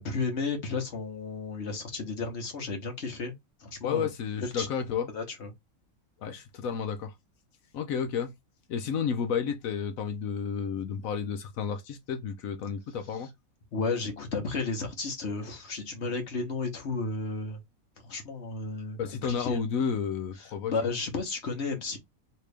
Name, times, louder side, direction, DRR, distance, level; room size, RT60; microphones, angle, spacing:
voice 1, 0.0-3.3 3.6-4.1 4.5-4.7 5.1-5.5 13.7-17.6 18.0-19.6 20.7-22.0, left 4 dB, 50° left, 1.3 m, -33 dB
voice 2, 3.8-5.1 6.2-7.1 7.7-8.3 8.7-13.3 19.0-20.7, left 6 dB, 70° left, 1.0 m, -31 dB
3.2 x 2.8 x 3.2 m
omnidirectional pair, 1.5 m